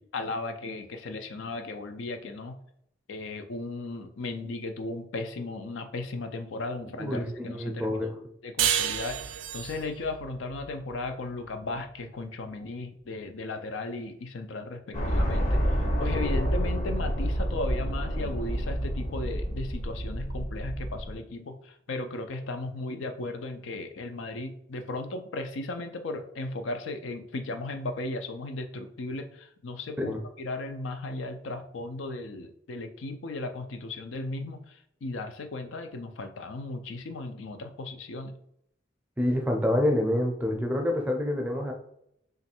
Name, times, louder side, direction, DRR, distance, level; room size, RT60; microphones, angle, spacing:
voice 1, 0.0-2.6 3.1-8.0 8.4-38.3, left 2 dB, 80° left, 7 dB, 0.5 m, -36 dB
voice 2, 7.0-8.2 30.1-30.2 39.2-41.7, left 1 dB, 10° right, 1 dB, 0.5 m, -27 dB
sound 1, 8.6-11.8, right 10 dB, 80° right, 0.4 m, -31 dB
sound 2, 14.9-21.2, equal, 35° left, 0.7 m, -28 dB
3.0 x 2.5 x 4.3 m, 0.72 s
head